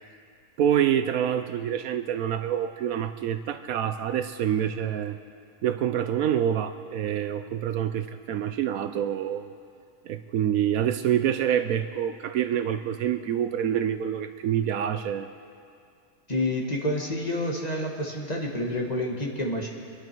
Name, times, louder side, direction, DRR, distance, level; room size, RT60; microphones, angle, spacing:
voice 1, 0.6-5.2 5.6-9.5 10.1-15.3, right 10 dB, 70° right, 10 dB, 1.0 m, -26 dB
voice 2, 16.3-19.7, left 1 dB, 25° left, -1 dB, 1.6 m, -28 dB
25.0 x 11.5 x 4.6 m, 2.3 s
omnidirectional pair, 1.6 m